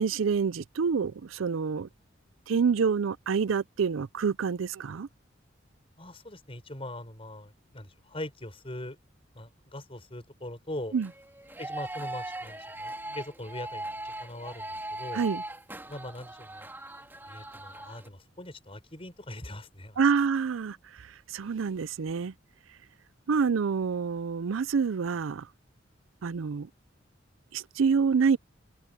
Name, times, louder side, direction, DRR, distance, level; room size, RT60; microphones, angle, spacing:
voice 1, 0.0-1.9 2.5-5.1 10.9-11.1 15.1-15.4 20.0-21.1 21.3-22.3 23.3-25.5 26.2-26.7 27.5-28.4, right 5 dB, 90° right, 0.5 m, -27 dB
voice 2, 6.0-9.0 9.3-10.9 11.6-15.2 15.9-16.7 17.3-20.0, left 1 dB, 30° left, 5.9 m, -41 dB
sound 1, 10.9-18.1, right 1 dB, 10° right, 3.1 m, -40 dB
head